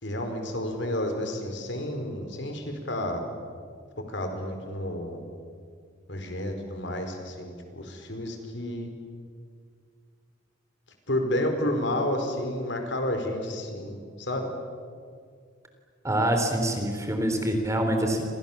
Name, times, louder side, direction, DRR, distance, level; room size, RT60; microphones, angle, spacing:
voice 1, 0.0-3.2 4.1-5.2 6.1-8.9 11.1-14.5, left 1 dB, 60° left, 5 dB, 4.6 m, -30 dB
voice 2, 16.0-18.2, right 1 dB, 15° right, 4 dB, 3.6 m, -25 dB
29.5 x 26.5 x 7.4 m, 2.1 s
head